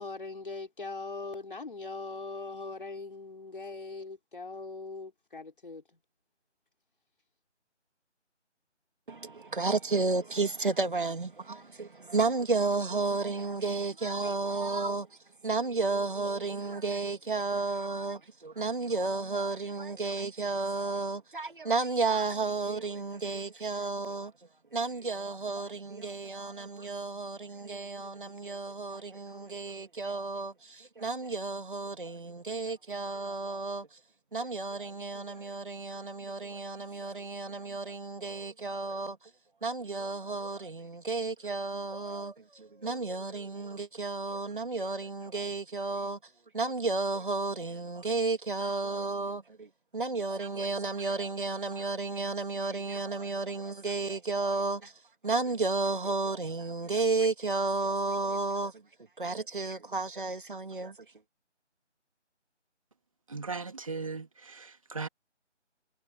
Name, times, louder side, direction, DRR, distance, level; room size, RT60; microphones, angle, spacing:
voice 1, 0.0-5.8, left 3 dB, 45° left, 4.7 m, -40 dB
voice 2, 9.1-24.3 24.7-34.0 34.3-39.2 39.6-46.2 46.5-54.9 55.2-58.8 59.2-61.0, right 3 dB, 45° right, 2.3 m, -32 dB
voice 3, 63.3-65.1, right 4 dB, 30° right, 2.9 m, -38 dB
figure-of-eight pair, 175°, 36 cm